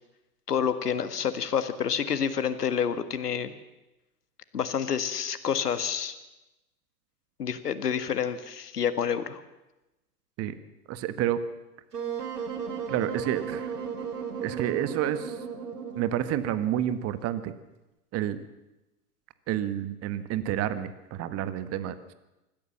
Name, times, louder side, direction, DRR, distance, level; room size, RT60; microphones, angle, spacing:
voice 1, 0.5-3.5 4.5-6.2 7.4-9.4, left 7 dB, 80° left, 11 dB, 1.8 m, -28 dB
voice 2, 10.9-11.4 12.9-13.7 14.4-15.4 15.9-17.5 18.1-18.4 19.5-22.1, right 11 dB, 30° right, 13 dB, 1.5 m, -29 dB
Wind instrument woodwind instrument, 11.9-17.0, right 7 dB, 80° right, 3.4 m, -35 dB
25.0 x 14.0 x 7.2 m, 1.0 s
hypercardioid pair, 105°, 46 cm